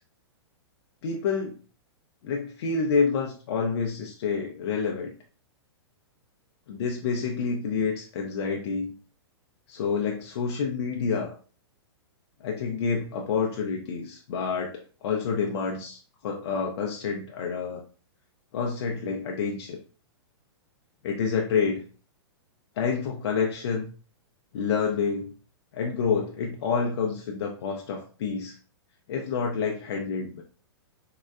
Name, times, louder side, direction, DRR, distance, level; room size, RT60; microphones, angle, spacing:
voice 1, 1.0-1.6 2.2-5.1 6.7-8.9 9.7-11.4 12.4-17.8 18.5-19.8 21.0-21.8 22.8-23.9 24.5-25.3 25.7-28.6 29.1-30.4, left 5 dB, 65° left, 1 dB, 0.6 m, -28 dB
3.8 x 2.1 x 2.4 m, 0.38 s
hypercardioid pair, 130°, 14 cm